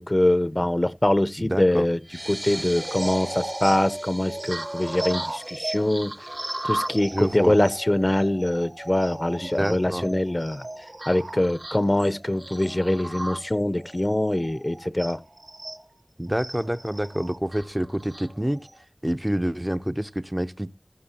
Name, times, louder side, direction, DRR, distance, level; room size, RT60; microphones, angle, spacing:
voice 1, 0.0-2.0 2.3-6.1 6.6-10.6 11.1-15.2, left 1 dB, 40° left, 0.5 m, -23 dB
voice 2, 1.4-1.9 7.1-7.6 9.4-10.1 16.2-18.6 19.0-20.7, equal, 20° right, 0.6 m, -27 dB
sound 1, 2.0-7.1, right 1 dB, 85° right, 5.7 m, -40 dB
sound 2, 2.7-15.8 16.4-18.8, right 1 dB, 65° right, 0.8 m, -35 dB
15.5 x 11.5 x 2.9 m
wide cardioid pair, 40°, 0 cm